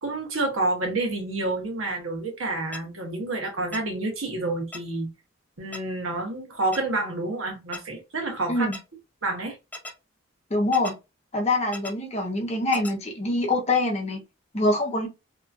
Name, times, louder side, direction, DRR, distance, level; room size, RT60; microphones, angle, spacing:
voice 1, 0.0-5.1 5.6-8.7 9.2-9.6, right 2 dB, 85° right, 1.1 m, -29 dB
sound 1, 2.7-2.8 3.7-3.8 4.7-4.8 5.7-5.8 6.7-6.8 7.7-7.8 8.7-8.8 9.7-9.9 10.7-10.9 11.7-11.9 12.7-12.9, left 2 dB, 10° left, 0.4 m, -37 dB
voice 2, 10.5-10.9 11.3-14.2 14.5-15.1, left 2 dB, 30° left, 0.7 m, -24 dB
2.9 x 2.4 x 2.5 m
head